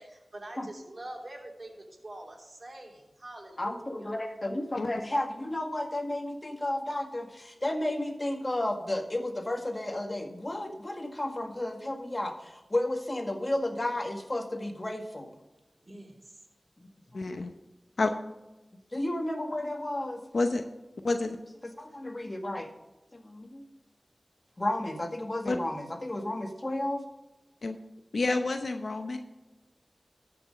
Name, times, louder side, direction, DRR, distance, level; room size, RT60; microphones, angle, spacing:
voice 1, 0.0-4.1 15.8-16.4, right 1 dB, 50° right, 0 dB, 3.1 m, -45 dB
voice 2, 3.6-15.4 18.9-20.2 21.6-22.7 23.1-23.6 24.6-27.0, left 1 dB, 35° left, 4 dB, 1.8 m, -32 dB
voice 3, 17.1-17.5 18.0-18.1 20.3-20.6 21.0-21.4 25.5-25.6 27.6-27.8 28.1-29.2, left 3 dB, 80° left, 6 dB, 0.8 m, -28 dB
13.0 x 6.2 x 5.1 m, 1.0 s
wide cardioid pair, 45°, 0 cm